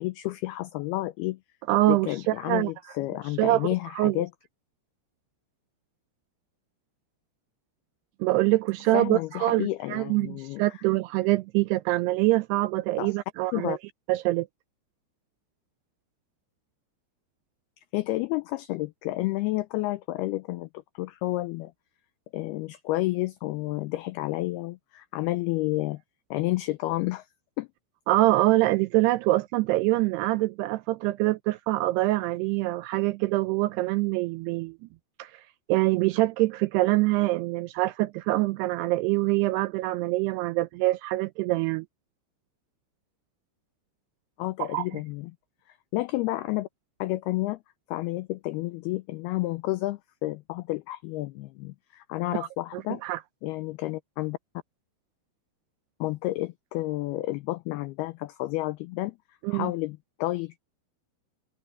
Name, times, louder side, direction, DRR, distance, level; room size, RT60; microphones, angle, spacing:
voice 1, 0.0-1.4 1.9-4.3 8.9-10.8 13.0-13.2 13.5-13.8 17.9-20.7 21.0-21.7 22.3-26.0 26.3-27.3 27.6-27.7 44.4-45.3 45.9-46.7 47.0-47.6 47.9-53.0 53.4-54.4 56.0-59.2 59.5-60.6, left 18 dB, 90° left, 2.2 m, -30 dB
voice 2, 1.7-2.7 3.4-3.7 4.0-4.2 8.2-13.8 14.1-14.5 28.1-34.8 35.2-35.4 35.7-41.9 44.6-44.9 52.4-52.5 52.7-53.2 59.4-59.7, right 18 dB, 85° right, 2.4 m, -25 dB
omnidirectional pair, 5.2 m